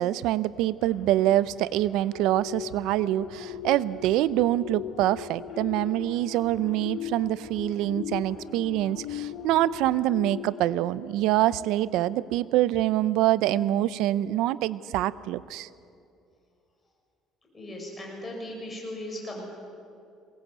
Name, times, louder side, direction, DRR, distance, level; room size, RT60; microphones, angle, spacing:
voice 1, 0.0-15.7, right 14 dB, 85° right, 17 dB, 0.6 m, -25 dB
sound 1, 0.6-9.9, left 4 dB, 65° left, 4.6 m, -53 dB
sound 2, 2.1-12.0 12.4-12.6, left 11 dB, 80° left, 0.8 m, -39 dB
voice 2, 17.5-19.4, left 1 dB, 20° left, -1 dB, 6.8 m, -37 dB
22.0 x 18.5 x 8.2 m, 2.5 s
cardioid pair, 125°, 0 cm